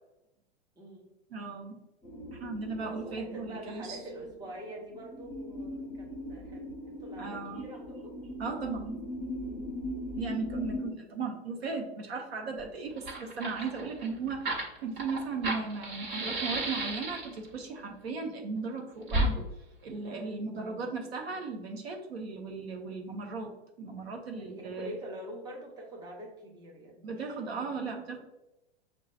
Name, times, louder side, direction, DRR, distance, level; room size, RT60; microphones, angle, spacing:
voice 1, 0.8-1.1 2.7-8.2 20.6-20.8 24.3-27.9, right 1 dB, 15° right, -1 dB, 0.7 m, -45 dB
voice 2, 1.3-1.8 2.3-4.0 7.2-7.6 8.4-9.0 10.2-19.4 19.8-23.5 23.8-24.9 27.0-28.2, right 4 dB, 70° right, 3 dB, 0.9 m, -36 dB
sound 1, 2.0-10.9, left 1 dB, 20° left, 0.8 m, -40 dB
Fire, 12.6-12.7 12.9-17.5 19.1-19.3, right 1 dB, 50° right, 1.3 m, -33 dB
6.3 x 2.4 x 2.4 m, 0.95 s
hypercardioid pair, 110°, 32 cm